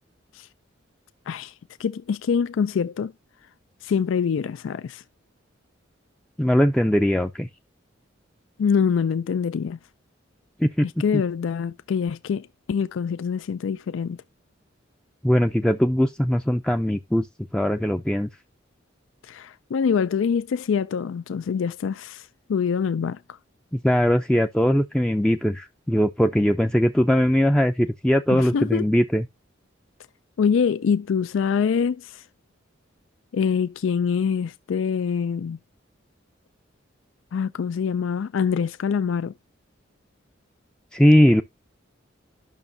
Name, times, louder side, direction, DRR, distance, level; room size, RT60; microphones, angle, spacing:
voice 1, 1.8-3.1 3.8-5.0 8.6-9.8 11.0-14.2 19.2-23.2 28.3-28.8 30.4-32.2 33.3-35.6 37.3-39.3, left 6 dB, 70° left, 0.4 m, -25 dB
voice 2, 6.4-7.5 10.6-10.9 11.1-11.2 15.2-17.3 17.5-18.3 23.7-29.2 40.9-41.4, equal, 5° left, 0.4 m, -20 dB
11.0 x 6.2 x 2.6 m
head